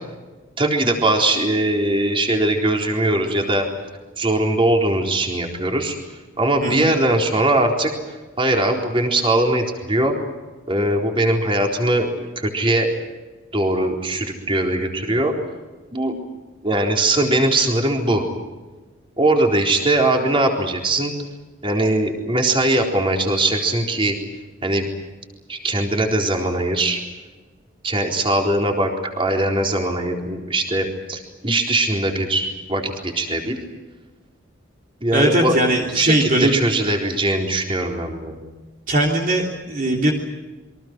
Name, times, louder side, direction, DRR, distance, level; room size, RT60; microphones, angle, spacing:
voice 1, 0.6-3.7 4.2-6.0 6.4-7.9 8.4-10.1 10.7-12.1 12.4-12.9 13.5-15.3 15.9-16.2 16.6-18.3 19.2-21.1 21.6-24.2 24.6-24.9 25.5-27.0 27.8-33.6 35.0-38.4, right 1 dB, 25° right, 2 dB, 4.1 m, -20 dB
voice 2, 6.6-6.9 35.1-36.6 38.9-40.1, right 1 dB, 45° right, -1 dB, 3.4 m, -19 dB
28.5 x 23.5 x 6.2 m, 1.3 s
head